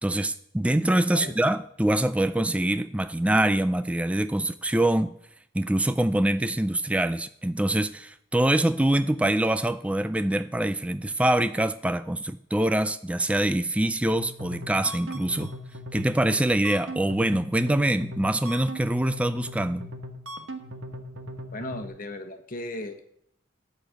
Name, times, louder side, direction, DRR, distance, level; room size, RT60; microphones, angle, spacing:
voice 1, 0.0-5.1 5.5-15.5 15.9-19.9, right 1 dB, 5° right, 12 dB, 0.3 m, -24 dB
sound 1, 14.2-21.9, equal, 75° right, 1.3 m, -39 dB
voice 2, 21.5-23.1, left 2 dB, 40° left, 5 dB, 1.2 m, -36 dB
13.0 x 4.4 x 8.2 m, 0.71 s
head